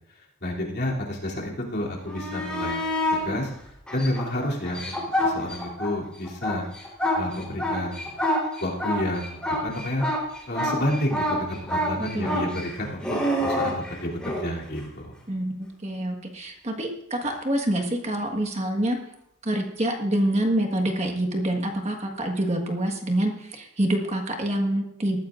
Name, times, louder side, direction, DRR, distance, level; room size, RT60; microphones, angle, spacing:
voice 1, 0.4-2.8 3.1-3.5 3.9-5.0 5.2-6.7 7.1-8.1 8.6-10.0 10.4-13.0 13.4-15.1, left 1 dB, 50° left, -3 dB, 3.0 m, -30 dB
sound 1, 2.0-3.2 3.9-5.9 6.2-14.5 17.2-17.3, left 1 dB, 5° left, 3.7 m, -27 dB
voice 2, 12.0-12.4 15.3-19.0 19.4-25.2, right 1 dB, 30° right, 3 dB, 1.5 m, -26 dB
19.5 x 14.0 x 2.5 m, 0.75 s
head